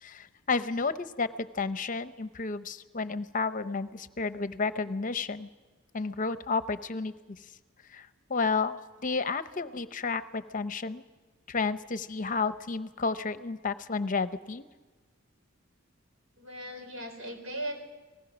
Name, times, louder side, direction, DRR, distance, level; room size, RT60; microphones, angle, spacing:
voice 1, 0.0-5.5 5.9-7.1 7.9-11.0 11.5-14.7, left 4 dB, 40° left, 12 dB, 0.7 m, -31 dB
voice 2, 16.4-17.8, right 1 dB, 90° right, 5 dB, 4.1 m, -38 dB
30.0 x 19.0 x 6.1 m, 1.3 s
head